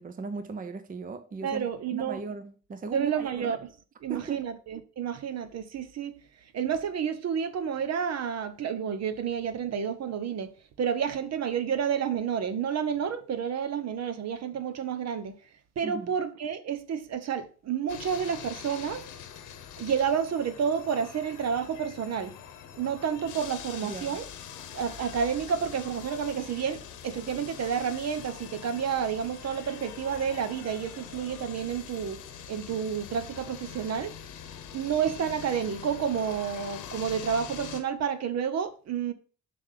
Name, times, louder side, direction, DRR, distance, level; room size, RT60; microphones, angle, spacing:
voice 1, 0.0-3.5 4.1-4.4 15.8-16.1 23.8-24.2, right 4 dB, 30° right, 0.6 m, -38 dB
voice 2, 1.4-2.2 2.9-3.7 4.0-6.2 6.5-10.5 10.8-15.4 15.8-19.0 19.8-22.3 22.8-24.3 24.7-32.2 32.5-34.1 34.7-39.1, right 7 dB, 60° right, 0.9 m, -30 dB
sound 1, 17.9-37.8, left 8 dB, 85° left, 1.1 m, -44 dB
7.2 x 3.5 x 5.7 m
cardioid pair, 90°, 30 cm